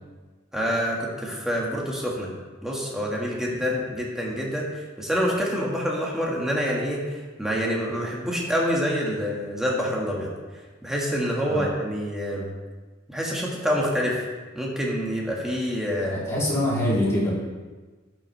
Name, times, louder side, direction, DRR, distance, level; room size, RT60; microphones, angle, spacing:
voice 1, 0.5-2.3 2.6-10.3 10.8-12.5 13.1-14.2 14.5-16.2, equal, 5° right, -3 dB, 1.7 m, -27 dB
voice 2, 16.0-17.3, left 1 dB, 15° left, -8 dB, 3.0 m, -24 dB
11.5 x 7.5 x 3.3 m, 1.3 s
head